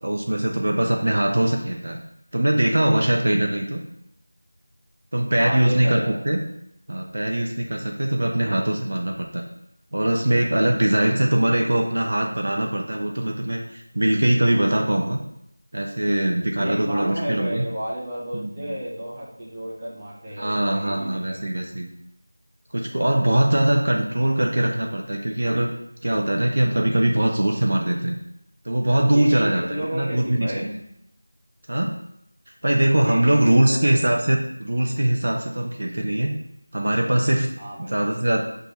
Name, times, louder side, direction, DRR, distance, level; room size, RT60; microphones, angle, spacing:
voice 1, 0.0-2.0 2.3-3.8 5.1-6.4 6.9-9.5 9.9-15.2 15.7-17.6 18.3-18.7 20.4-21.9 22.7-25.7 26.0-28.2 28.7-30.7 31.7-31.9 32.6-36.3 36.7-37.5 37.8-38.4, right 1 dB, 55° right, 1 dB, 0.5 m, -22 dB
voice 2, 5.4-6.1 10.6-10.9 16.6-21.4 29.1-30.7 33.0-34.3 37.6-37.9, equal, 15° right, -7 dB, 0.7 m, -32 dB
6.3 x 2.2 x 3.0 m, 0.78 s
figure-of-eight pair, 175°, 0 cm